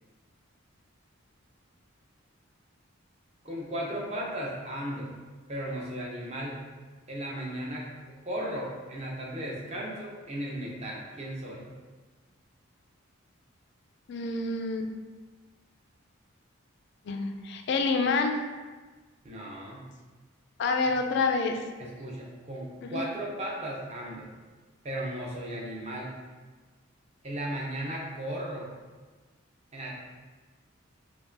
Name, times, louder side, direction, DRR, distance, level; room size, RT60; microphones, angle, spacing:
voice 1, 3.4-5.1 5.5-6.6 7.1-7.9 8.2-11.6 19.2-19.8 21.8-24.3 24.8-26.1 27.2-28.7 29.7-29.9, right 1 dB, 30° right, -3 dB, 0.6 m, -35 dB
voice 2, 14.1-14.9 17.1-18.4 20.6-21.6 22.8-23.1, left 4 dB, 55° left, 5 dB, 0.3 m, -27 dB
4.5 x 2.2 x 2.6 m, 1.3 s
head